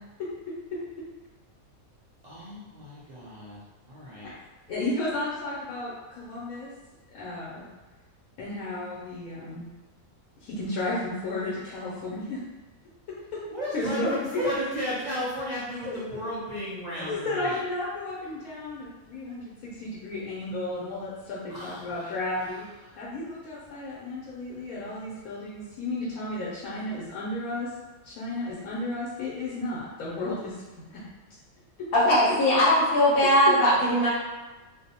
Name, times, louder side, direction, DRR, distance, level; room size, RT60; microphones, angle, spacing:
voice 1, 0.2-1.0 4.7-6.7 7.1-7.7 8.4-9.7 10.4-12.4 13.1-13.4 13.7-14.6 15.8-16.3 17.0-22.7 23.0-27.7 28.0-30.6 30.9-31.0 31.8-31.9, left 2 dB, 85° left, -7 dB, 1.0 m, -33 dB
voice 2, 2.2-3.6 3.9-4.3 13.5-17.6 21.5-22.1, equal, 60° right, -9 dB, 0.4 m, -34 dB
voice 3, 31.9-34.1, equal, 50° left, -6 dB, 0.8 m, -20 dB
2.6 x 2.0 x 2.7 m, 1.2 s
omnidirectional pair, 1.5 m